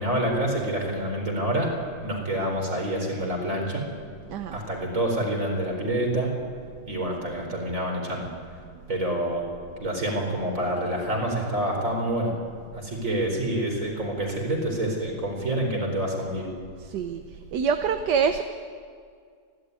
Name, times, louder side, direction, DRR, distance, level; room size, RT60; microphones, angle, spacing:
voice 1, 0.0-1.7 2.0-3.8 4.5-6.3 6.9-8.3 8.9-9.4 9.8-12.3 12.7-16.5, right 1 dB, 40° right, 1 dB, 4.7 m, -27 dB
voice 2, 16.9-17.2 17.5-18.4, right 6 dB, 65° right, 8 dB, 1.4 m, -25 dB
29.0 x 12.5 x 9.7 m, 2.1 s
omnidirectional pair, 2.0 m